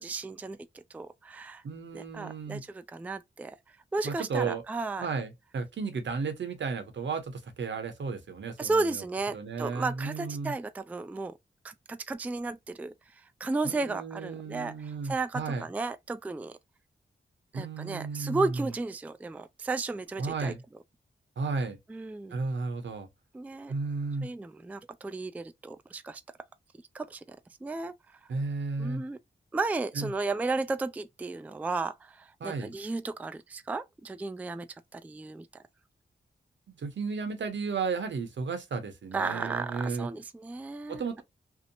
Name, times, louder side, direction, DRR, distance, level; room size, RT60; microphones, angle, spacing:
voice 1, 0.0-1.6 1.9-3.6 3.9-5.1 8.6-11.4 11.6-16.6 17.5-20.5 21.9-22.3 23.3-23.7 24.2-26.2 26.9-27.9 28.8-29.2 29.5-34.7 34.9-35.5 39.1-41.2, right 3 dB, 10° right, 0.3 m, -34 dB
voice 2, 1.6-2.6 4.0-4.6 5.0-9.0 9.3-10.5 13.6-15.6 17.5-18.7 20.2-20.6 21.4-21.8 22.3-23.1 23.7-24.3 28.3-29.0 29.9-30.1 32.4-32.7 36.8-40.1 40.9-41.2, right 4 dB, 70° right, 0.8 m, -33 dB
2.7 x 2.1 x 2.6 m
cardioid pair, 45°, 20 cm